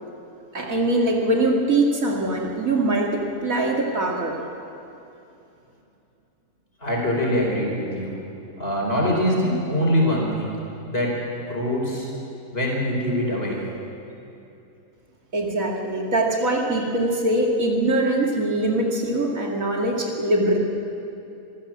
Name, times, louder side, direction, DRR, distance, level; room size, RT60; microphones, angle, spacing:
voice 1, 0.5-4.4 15.3-20.6, right 1 dB, 65° right, -1 dB, 2.7 m, -22 dB
voice 2, 6.8-8.1 8.6-10.5 10.9-11.1 11.3-12.1 12.5-13.6, equal, 40° left, -2 dB, 5.1 m, -23 dB
25.5 x 15.0 x 7.5 m, 2.8 s
omnidirectional pair, 1.6 m